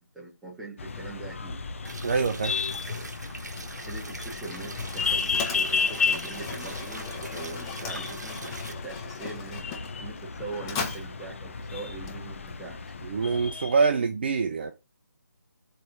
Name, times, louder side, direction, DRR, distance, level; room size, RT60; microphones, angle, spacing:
voice 1, 0.1-1.6 3.7-12.8, right 4 dB, 5° right, 1.6 m, -42 dB
sound 1, 0.8-13.9, left 5 dB, 45° left, 0.9 m, -33 dB
sound 2, 1.8-8.7, right 3 dB, 70° right, 1.2 m, -43 dB
voice 2, 2.0-2.6 13.0-14.7, right 5 dB, 35° right, 0.6 m, -25 dB
Mechanisms, 3.0-12.7, left 5 dB, 15° left, 0.8 m, -40 dB
7.7 x 3.4 x 5.5 m
figure-of-eight pair, 160°, 10 cm